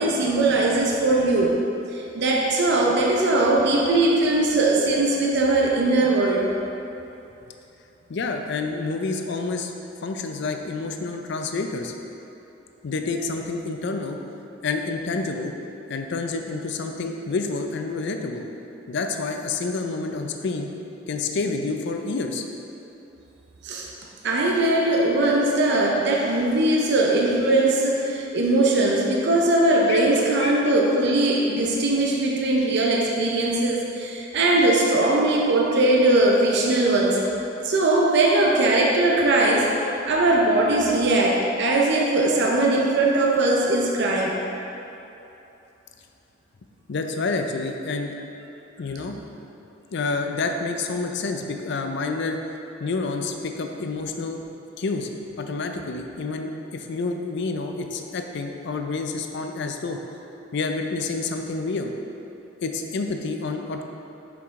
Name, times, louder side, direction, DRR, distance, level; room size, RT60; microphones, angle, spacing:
voice 1, 0.0-1.6 1.9-6.6 23.6-23.9 24.2-37.3 37.6-44.4, right 2 dB, 60° right, -1 dB, 0.6 m, -20 dB
voice 2, 8.1-9.7 10.0-11.9 12.8-14.2 14.6-15.5 15.9-18.5 18.9-20.7 21.1-22.4 29.9-30.1 30.4-30.5 46.9-48.2 48.8-49.2 49.9-52.4 52.8-54.4 54.8-55.1 55.4-60.0 60.5-61.9 62.6-63.8, left 3 dB, 65° left, 5 dB, 0.5 m, -28 dB
5.7 x 4.8 x 3.6 m, 2.9 s
head